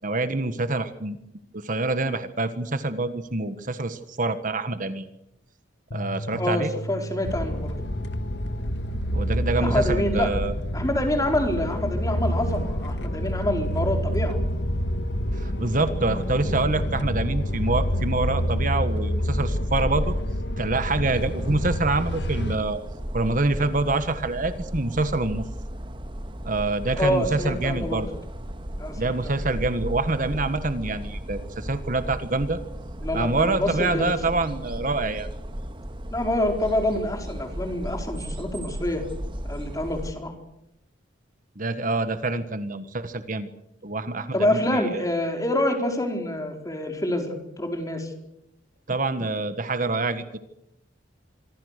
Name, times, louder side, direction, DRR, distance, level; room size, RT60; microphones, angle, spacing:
voice 1, 0.0-1.2 1.5-5.1 5.9-6.7 9.1-10.5 15.3-20.1 20.6-22.8 23.1-25.5 26.4-28.1 29.0-32.6 33.1-35.3 41.6-43.5 43.8-45.0 48.9-50.4, right 2 dB, 45° right, 10 dB, 1.4 m, -26 dB
Bass guitar, 5.9-12.2, right 1 dB, 85° left, 1.7 m, -38 dB
voice 2, 6.4-7.8 9.6-10.3 10.7-14.4 27.0-28.0 28.8-29.3 33.0-34.4 36.1-39.0 39.5-40.3 44.3-48.1, left 1 dB, 20° left, 4 dB, 4.3 m, -26 dB
sound 1, 7.2-22.6, equal, 65° left, 1.7 m, -27 dB
sound 2, 21.1-40.1, equal, 25° right, 1.6 m, -35 dB
26.0 x 23.5 x 6.7 m, 0.81 s
head